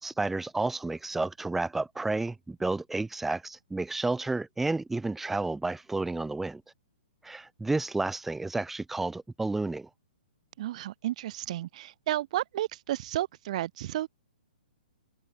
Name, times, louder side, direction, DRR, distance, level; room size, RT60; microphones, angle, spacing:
voice 1, 0.0-6.6 7.2-9.9, right 3 dB, 5° right, 2.0 m, -31 dB
voice 2, 10.6-14.1, right 14 dB, 45° right, 2.0 m, -32 dB
open air
hypercardioid pair, 160°, 5 cm